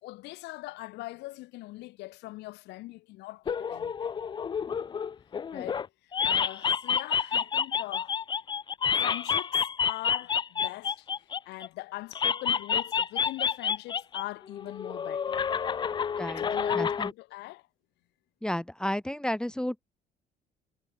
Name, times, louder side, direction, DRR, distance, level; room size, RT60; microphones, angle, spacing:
voice 1, 0.0-4.1 5.5-8.2 9.0-15.4 16.4-17.7, left 20 dB, 90° left, 3.7 m, -42 dB
sound 1, 3.5-5.9 6.1-11.7 12.1-14.2 14.5-17.1, left 7 dB, 25° left, 0.4 m, -29 dB
voice 2, 16.7-17.1 18.4-19.8, left 1 dB, 5° left, 1.1 m, -32 dB
cardioid pair, 110°, 17 cm